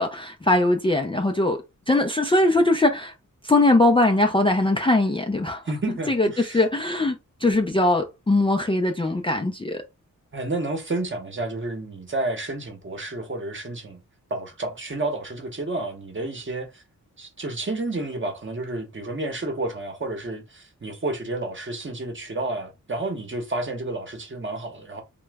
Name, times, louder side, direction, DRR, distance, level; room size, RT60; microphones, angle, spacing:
voice 1, 0.0-1.6 1.9-3.1 3.4-5.6 6.1-7.2 7.4-9.8, left 2 dB, 15° left, 0.4 m, -21 dB
voice 2, 5.7-6.6 10.3-14.0 14.3-16.8 17.2-25.0, right 2 dB, 35° right, 0.9 m, -30 dB
2.9 x 2.2 x 3.4 m
wide cardioid pair, 90°, 33 cm